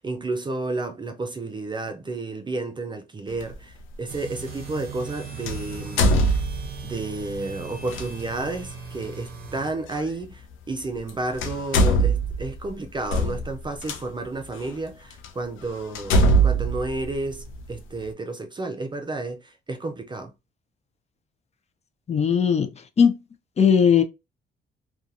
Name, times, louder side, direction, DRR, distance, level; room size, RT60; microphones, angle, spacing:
voice 1, 0.0-6.4 6.8-20.3, right 2 dB, 25° right, 0.4 m, -31 dB
sound 1, 3.4-3.5 5.5-6.9 7.9-8.1 9.9-10.0 11.0-11.1 11.4-14.0 14.7-14.8 15.2-15.3 16.0-17.7, right 1 dB, 85° left, 0.5 m, -22 dB
sound 2, 4.1-9.7, right 6 dB, 50° right, 0.7 m, -39 dB
voice 2, 22.1-22.7 23.0-23.2 23.6-24.0, left 7 dB, 35° left, 0.5 m, -18 dB
2.7 x 2.3 x 2.5 m
cardioid pair, 90°, 20 cm